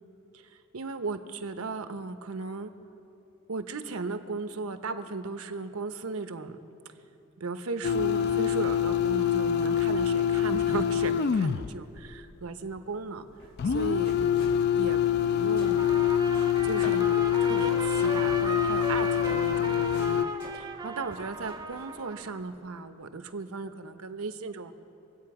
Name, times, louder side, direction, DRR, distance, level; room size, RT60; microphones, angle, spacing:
voice 1, 0.3-2.7 3.5-6.6 7.4-13.2 13.6-15.9 16.6-24.7, right 3 dB, 90° right, 9 dB, 0.8 m, -36 dB
sound 1, 7.8-11.7 13.6-20.3, left 9 dB, 50° left, 0.3 m, -25 dB
sound 2, 11.7-22.6, equal, 90° left, 3.5 m, -50 dB
Trumpet, 15.6-22.4, right 3 dB, 20° right, 0.6 m, -37 dB
25.0 x 8.5 x 4.8 m, 3.0 s
head